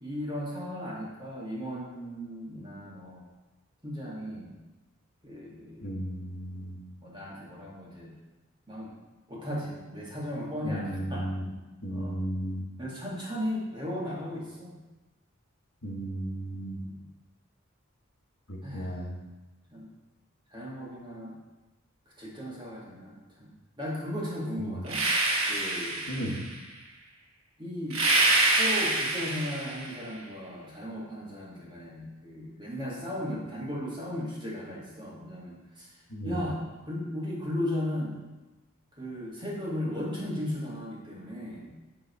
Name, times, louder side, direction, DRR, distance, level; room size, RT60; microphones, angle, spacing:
voice 1, 0.0-3.3 3.8-4.5 5.2-6.0 7.0-8.1 8.7-9.0 9.3-11.3 11.9-12.2 12.8-14.8 16.8-17.1 18.6-19.0 19.7-19.9 20.5-21.4 22.1-25.0 25.5-26.1 27.6-28.0 28.5-36.0 36.2-38.2 39.0-41.7, left 1 dB, 20° right, -5 dB, 1.9 m, -36 dB
voice 2, 5.8-6.8 10.6-11.5 11.8-12.7 15.8-16.8 18.5-19.2 24.6-24.8 26.1-26.4 36.1-36.4, right 1 dB, 60° left, -1 dB, 1.4 m, -34 dB
sound 1, 24.9-26.5 27.9-30.0, right 2 dB, 70° right, 1.3 m, -26 dB
9.7 x 3.8 x 4.6 m, 1.1 s
head